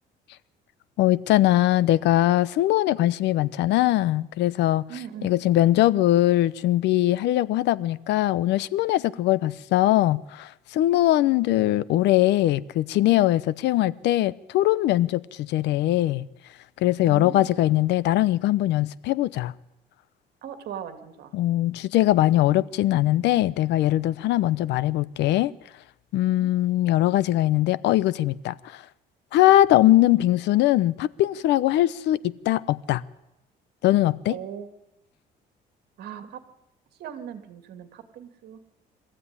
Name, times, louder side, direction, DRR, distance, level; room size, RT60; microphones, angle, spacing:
voice 1, 1.0-16.3 16.8-19.5 21.3-25.5 26.1-28.8 29.3-33.0 33.8-34.4, left 15 dB, 75° left, 0.8 m, -21 dB
voice 2, 4.9-5.4 17.0-17.5 20.4-21.3 26.3-26.5 34.3-34.7 36.0-36.4 37.0-38.6, right 9 dB, 60° right, 2.6 m, -38 dB
23.5 x 15.0 x 9.8 m
cardioid pair, 160°, 18 cm